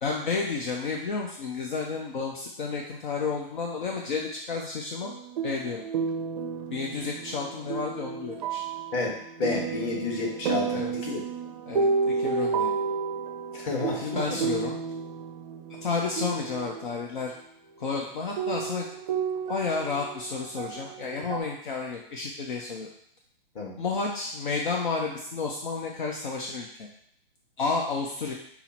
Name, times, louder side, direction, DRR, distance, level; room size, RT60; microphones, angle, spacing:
voice 1, 0.0-5.1 5.4-5.8 6.7-8.6 10.7-11.0 11.7-12.7 13.9-14.8 15.8-17.3 17.8-18.9 19.5-22.9 23.8-26.9 27.6-28.3, left 4 dB, 55° left, 0 dB, 0.7 m, -31 dB
sound 1, 5.0-17.0 17.9-18.0 18.4-21.4, right 5 dB, 45° right, 0.5 m, -31 dB
voice 2, 8.9-11.2 13.5-14.2 23.5-23.7, left 3 dB, 30° left, -3 dB, 1.2 m, -30 dB
5.6 x 2.0 x 4.3 m, 0.68 s
hypercardioid pair, 140°, 29 cm